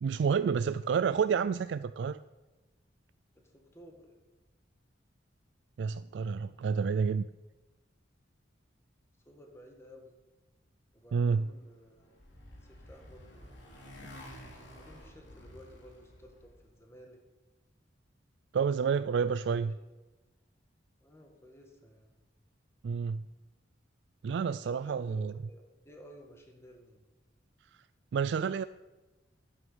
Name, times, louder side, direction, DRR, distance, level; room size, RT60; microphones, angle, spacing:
voice 1, 0.0-2.2 5.8-7.3 11.1-11.5 18.5-19.7 22.8-23.2 24.2-25.3 28.1-28.6, right 6 dB, 65° right, 14 dB, 0.3 m, -29 dB
voice 2, 0.9-1.3 3.4-4.1 9.3-10.2 10.9-13.6 14.0-14.2 14.8-17.2 19.5-19.7 21.0-22.2 24.6-27.1, equal, 15° left, 2 dB, 1.9 m, -55 dB
Motorcycle, 11.6-16.7, left 1 dB, 75° left, 3.2 m, -51 dB
11.0 x 9.4 x 7.1 m, 1.1 s
head